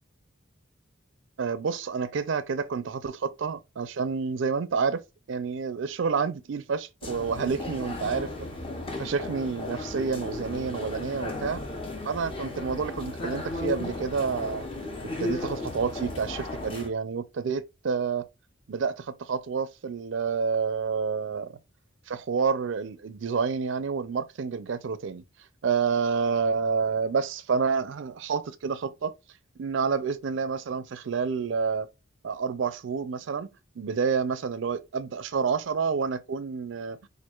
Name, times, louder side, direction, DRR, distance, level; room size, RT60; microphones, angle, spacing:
voice 1, 1.4-8.5 8.9-11.6 12.1-14.7 15.2-18.3 18.7-21.6 22.1-25.2 25.6-29.1 29.6-31.9 32.2-33.5 33.8-37.0, right 5 dB, 65° right, 0.4 m, -29 dB
sound 1, 7.0-16.9, left 2 dB, 25° left, 0.7 m, -35 dB
4.4 x 2.5 x 2.3 m
head